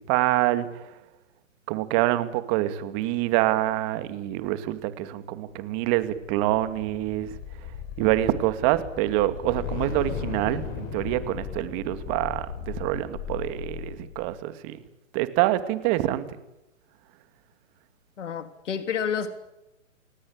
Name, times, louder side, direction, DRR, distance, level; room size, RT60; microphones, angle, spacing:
voice 1, 0.1-0.7 1.7-7.3 8.0-14.8 15.1-16.2, right 15 dB, 25° right, 2.3 m, -26 dB
sound 1, 5.9-14.3, left 7 dB, 25° left, 5.7 m, -36 dB
voice 2, 18.2-19.4, left 7 dB, 65° left, 3.4 m, -29 dB
29.5 x 19.0 x 8.7 m
hypercardioid pair, 145°, 39 cm